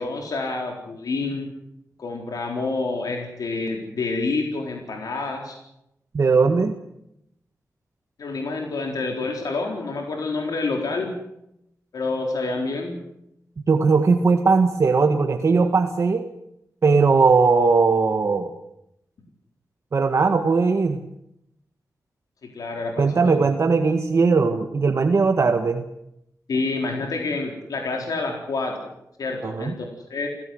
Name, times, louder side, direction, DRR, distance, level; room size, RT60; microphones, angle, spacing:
voice 1, 0.0-1.5 2.0-5.6 8.2-11.1 11.9-13.0 22.5-23.3 26.5-28.9 29.2-30.3, left 3 dB, 90° left, 1 dB, 4.2 m, -28 dB
voice 2, 6.1-6.7 13.7-16.3 16.8-18.5 19.9-21.0 23.0-25.8 29.4-29.7, right 4 dB, 50° right, 5 dB, 1.6 m, -19 dB
29.5 x 16.5 x 7.9 m, 0.82 s
wide cardioid pair, 160°, 6 cm